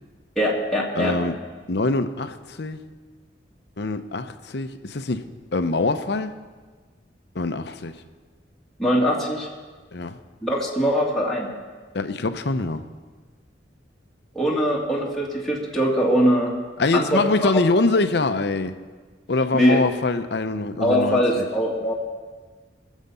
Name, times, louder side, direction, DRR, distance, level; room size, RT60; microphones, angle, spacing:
voice 1, 0.4-1.1 8.8-9.5 10.4-11.5 14.3-16.5 16.9-17.6 19.5-19.8 20.8-21.9, equal, ahead, -5 dB, 1.9 m, -22 dB
voice 2, 0.9-1.3 1.7-2.8 3.8-6.3 7.3-7.9 9.9-10.2 11.9-12.8 16.8-18.7 19.3-21.4, left 3 dB, 65° left, 9 dB, 0.7 m, -24 dB
21.0 x 7.3 x 5.5 m, 1.4 s
head